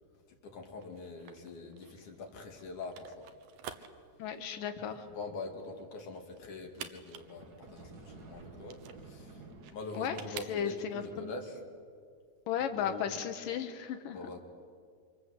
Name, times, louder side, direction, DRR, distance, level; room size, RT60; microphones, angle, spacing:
voice 1, 0.3-3.3 5.1-9.4 9.7-11.6 12.6-13.0 14.1-14.4, left 3 dB, 65° left, 2 dB, 4.1 m, -44 dB
sound 1, 0.8-11.0, right 8 dB, 80° right, 3.0 m, -50 dB
voice 2, 4.2-5.0 10.0-10.2 10.5-11.3 12.5-14.2, left 8 dB, 80° left, 8 dB, 2.8 m, -35 dB
sound 2, 7.1-9.7, right 3 dB, 35° right, 1.8 m, -51 dB
27.5 x 25.5 x 8.1 m, 2.1 s
omnidirectional pair, 3.9 m